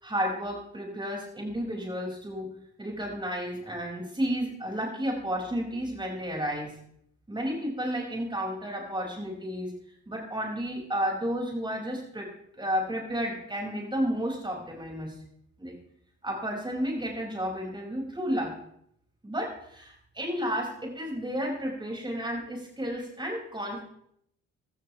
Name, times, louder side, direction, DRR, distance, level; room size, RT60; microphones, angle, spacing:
voice 1, 0.0-2.5 2.8-6.7 7.3-9.7 10.1-12.3 12.6-15.1 15.6-15.7 16.2-18.5 19.2-23.8, equal, 15° right, -1 dB, 6.6 m, -32 dB
17.5 x 13.5 x 3.5 m, 0.70 s
cardioid pair, 90°, 30 cm